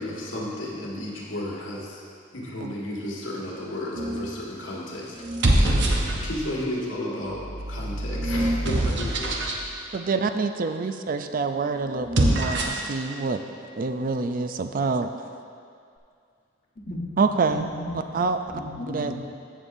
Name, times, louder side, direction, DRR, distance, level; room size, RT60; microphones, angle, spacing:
voice 1, 0.0-2.0 2.3-5.3 5.6-9.4 9.8-10.0, left 1 dB, 85° left, -4 dB, 1.9 m, -33 dB
sound 1, 4.0-4.4 5.2-6.6 7.3-9.6 12.0-12.9, right 1 dB, 65° right, 0.9 m, -24 dB
voice 2, 9.9-13.4 13.8-15.1 17.2-17.6 18.1-18.4 18.9-19.1, right 4 dB, 45° right, 8 dB, 0.4 m, -26 dB
voice 3, 16.8-19.1, left 1 dB, 45° left, -3 dB, 1.2 m, -36 dB
15.0 x 6.6 x 2.6 m, 2.3 s
head